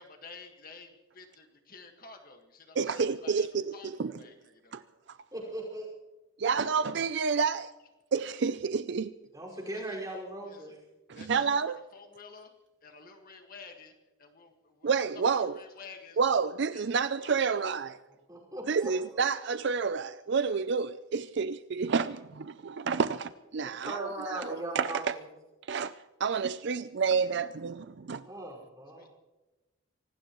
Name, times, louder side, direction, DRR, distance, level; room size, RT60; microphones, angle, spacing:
voice 1, 0.0-4.8 5.4-5.7 9.5-10.0 10.4-10.7 11.1-11.6 11.9-12.5 12.8-16.2 16.7-17.8 29.0-29.1, left 4 dB, 40° left, 1.7 m, -51 dB
voice 2, 2.8-4.1 4.7-4.8 5.1-5.2 6.4-7.7 8.1-9.2 11.3-11.8 14.8-15.6 16.2-17.9 18.7-24.5 24.8-25.1 25.7-25.9 26.2-28.3, right 5 dB, 55° right, 0.4 m, -29 dB
voice 3, 5.3-5.9 9.3-10.8 18.3-18.9 20.4-20.5 23.6-25.3 28.3-29.1, right 1 dB, 15° right, 5.1 m, -39 dB
24.5 x 19.0 x 3.1 m
head